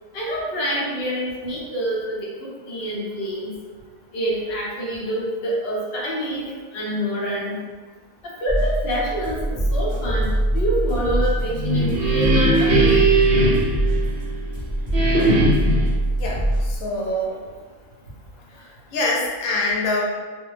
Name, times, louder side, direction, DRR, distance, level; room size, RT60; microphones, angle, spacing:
voice 1, 0.1-3.5 4.1-6.4 6.7-7.6 8.2-13.0, equal, 55° left, -5 dB, 0.8 m, -27 dB
sound 1, 8.5-16.8, right 1 dB, 25° right, 0.6 m, -23 dB
sound 2, 11.4-14.5 14.9-15.9, right 2 dB, 60° right, 0.7 m, -19 dB
voice 2, 16.2-17.4 18.5-20.0, left 2 dB, 85° left, -3 dB, 1.0 m, -25 dB
2.4 x 2.1 x 3.1 m, 1.5 s
omnidirectional pair, 1.3 m